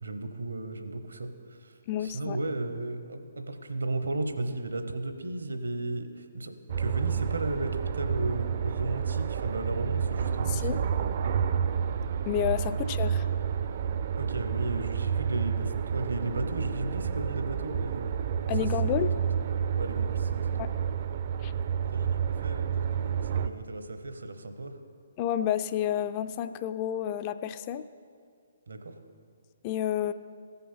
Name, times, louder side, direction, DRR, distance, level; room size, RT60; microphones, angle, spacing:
voice 1, 0.0-1.7 2.0-10.9 14.1-18.0 18.6-19.0 19.8-20.7 21.9-24.7 28.7-28.9, right 2 dB, 75° right, 8 dB, 0.9 m, -35 dB
voice 2, 1.9-2.4 10.5-10.8 12.3-13.2 18.5-19.1 20.6-20.7 21.4-21.5 25.2-27.8 29.6-30.1, left 10 dB, 30° left, 12 dB, 0.3 m, -30 dB
sound 1, 6.7-23.5, right 7 dB, 45° right, 0.4 m, -30 dB
14.5 x 5.7 x 5.7 m, 2.2 s
figure-of-eight pair, 130°, 0 cm